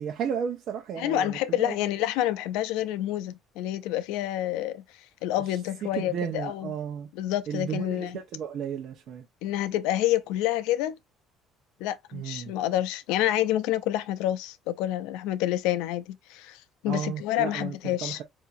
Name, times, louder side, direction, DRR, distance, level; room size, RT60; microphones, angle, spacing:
voice 1, 0.0-1.7 6.0-7.1 7.5-9.2 12.1-12.5 16.9-17.7 18.0-18.2, right 8 dB, 65° right, 0.9 m, -33 dB
voice 2, 1.0-6.7 7.1-8.2 9.4-11.0 11.8-18.2, left 13 dB, 90° left, 0.5 m, -28 dB
4.7 x 2.8 x 2.6 m
cardioid pair, 105°, 0 cm